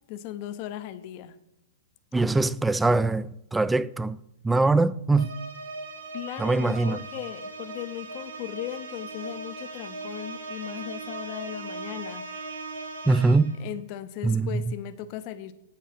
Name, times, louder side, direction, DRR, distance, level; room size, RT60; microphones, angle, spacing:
voice 1, 0.1-1.4 6.1-12.3 13.6-15.5, left 12 dB, 45° left, 0.6 m, -37 dB
voice 2, 2.1-4.2 4.4-5.3 6.4-7.0 13.1-13.6 14.2-14.7, right 3 dB, 5° right, 0.3 m, -23 dB
sound 1, 5.1-13.7, right 3 dB, 80° right, 4.2 m, -39 dB
8.1 x 7.3 x 5.9 m
hypercardioid pair, 125°, 0 cm